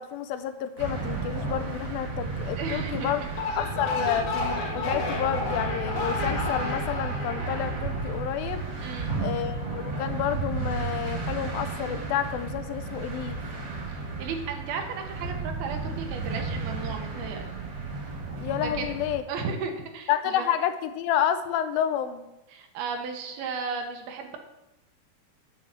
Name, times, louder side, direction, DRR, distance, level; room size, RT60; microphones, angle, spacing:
voice 1, 0.0-3.2 3.6-8.6 9.2-13.4 18.4-19.2 20.1-22.3, left 10 dB, 80° left, 10 dB, 2.3 m, -30 dB
sound 1, 0.8-19.2, right 3 dB, 40° right, 2.0 m, -33 dB
voice 2, 2.6-3.1 8.8-9.1 13.9-17.4 18.6-18.9 19.3-20.1 20.4-20.5 22.5-24.4, right 5 dB, 80° right, 4 dB, 3.0 m, -34 dB
sound 2, 3.2-8.6, left 3 dB, 60° left, 2.7 m, -32 dB
9.5 x 5.4 x 8.0 m, 0.94 s
omnidirectional pair, 4.4 m